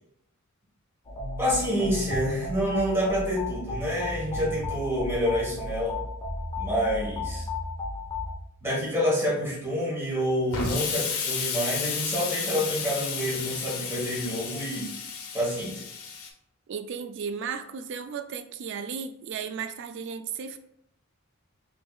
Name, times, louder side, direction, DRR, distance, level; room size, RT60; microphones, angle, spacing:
sound 1, 1.0-8.3, left 2 dB, 20° left, 0.8 m, -34 dB
voice 1, 1.4-6.0 6.6-7.5 8.6-14.9 15.3-15.8, equal, 10° right, -5 dB, 1.2 m, -28 dB
Explosion, 10.5-16.3, left 5 dB, 70° left, 0.7 m, -32 dB
voice 2, 16.7-20.6, right 6 dB, 55° right, 9 dB, 0.3 m, -35 dB
4.7 x 3.0 x 2.3 m, 0.74 s
head